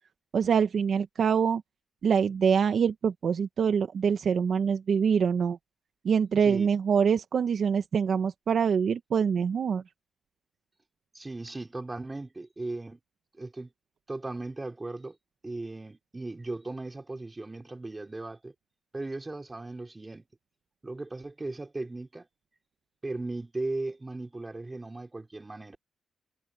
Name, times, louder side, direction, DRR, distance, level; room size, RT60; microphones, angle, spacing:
voice 1, 0.3-1.6 2.0-5.6 6.0-9.8, right 6 dB, 55° right, 1.1 m, -25 dB
voice 2, 11.1-13.0 13.4-13.7 14.1-15.2 15.4-18.5 18.9-20.2 20.8-22.3 23.0-25.8, right 2 dB, 15° right, 4.2 m, -37 dB
cardioid pair, 125°, 0 cm